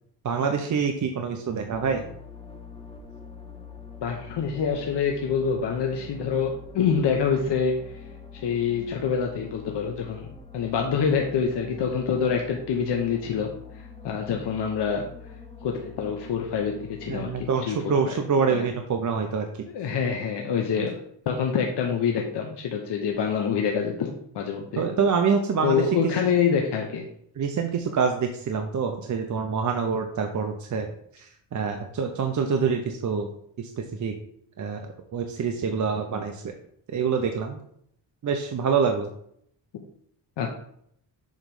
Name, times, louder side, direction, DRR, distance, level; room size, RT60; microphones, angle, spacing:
voice 1, 0.2-2.0 17.1-19.5 24.8-25.8 27.4-33.3 33.6-33.7 34.0-34.1 34.6-34.8 35.1-36.4 36.9-37.6 38.2-39.1, right 5 dB, 40° right, 4 dB, 0.6 m, -26 dB
sound 1, 1.7-17.4, left 5 dB, 10° left, 0.6 m, -44 dB
voice 2, 4.0-8.0 8.4-10.3 10.5-13.5 13.7-15.0 15.6-17.9 18.5-18.7 19.7-21.0 21.3-24.8 25.6-27.0 40.4-40.5, left 6 dB, 65° left, 2 dB, 0.9 m, -26 dB
7.4 x 3.1 x 5.3 m, 0.68 s
wide cardioid pair, 140°, 44 cm